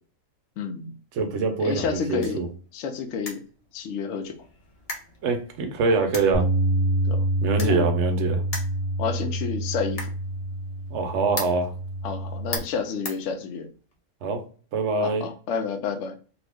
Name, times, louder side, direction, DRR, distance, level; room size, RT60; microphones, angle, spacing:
voice 1, 0.6-0.9 1.6-2.4 2.7-3.4 3.7-4.4 7.0-7.3 7.6-7.9 9.0-10.1 12.0-13.7 15.0-16.2, left 6 dB, 70° left, 0.8 m, -30 dB
voice 2, 1.1-2.5 5.2-6.5 7.4-8.4 10.9-11.7 14.2-14.4 14.7-15.3, right 4 dB, 65° right, 0.9 m, -24 dB
sound 1, 1.7-13.9, left 2 dB, 35° left, 0.6 m, -41 dB
Bass guitar, 6.3-12.6, right 1 dB, 25° right, 0.5 m, -27 dB
2.8 x 2.3 x 3.3 m
omnidirectional pair, 1.4 m